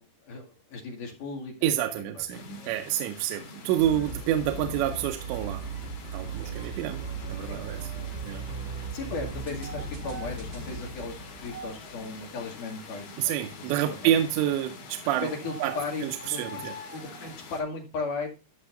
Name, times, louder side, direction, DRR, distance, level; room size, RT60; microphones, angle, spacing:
voice 1, 0.2-2.3 6.6-6.7 7.4-7.6 7.9-8.1 8.9-13.5 13.8-14.1 15.0-18.3, left 3 dB, 55° left, 3.1 m, -37 dB
voice 2, 1.6-5.7 6.1-7.9 8.2-8.5 8.8-8.9 13.2-15.3 15.6-15.8 16.0-16.7, right 11 dB, 85° right, 2.8 m, -28 dB
sound 1, 2.3-17.6, left 4 dB, 80° left, 4.9 m, -46 dB
sound 2, 2.6-3.0 3.8-5.6 6.4-9.3 9.6-12.9 13.8-17.4, right 3 dB, 60° right, 3.0 m, -48 dB
sound 3, 3.8-12.2, right 4 dB, 30° right, 2.2 m, -37 dB
14.0 x 5.6 x 2.5 m
omnidirectional pair, 5.2 m